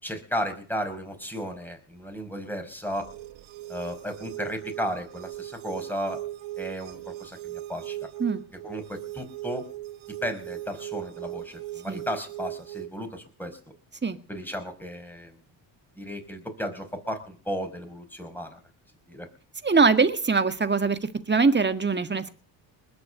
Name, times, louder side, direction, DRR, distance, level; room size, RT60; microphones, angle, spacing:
voice 1, 0.0-3.1 3.7-6.2 6.6-8.0 8.6-9.7 10.2-13.5 14.3-15.3 16.0-18.6 19.1-19.3, equal, 5° left, 5 dB, 5.2 m, -34 dB
sound 1, 2.9-12.9, right 15 dB, 70° right, 1.2 m, -38 dB
voice 2, 19.6-22.3, right 4 dB, 20° right, 10 dB, 1.8 m, -22 dB
20.5 x 7.0 x 8.0 m, 0.41 s
supercardioid pair, 75°, 47 cm